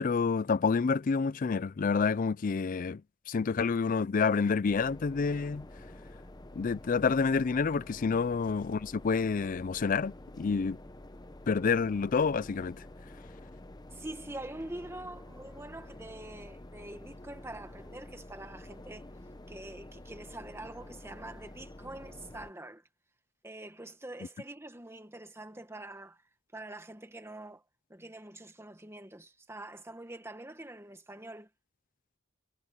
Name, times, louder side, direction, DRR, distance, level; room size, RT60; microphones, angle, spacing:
voice 1, 0.0-3.0 3.3-5.7 6.6-10.8 11.5-12.8, left 5 dB, 40° left, 0.4 m, -28 dB
sound 1, 4.6-22.5, left 1 dB, 20° left, 0.7 m, -49 dB
voice 2, 13.9-19.1 19.5-22.8 23.4-26.2 26.5-27.6 27.9-31.5, right 1 dB, 10° right, 1.7 m, -45 dB
head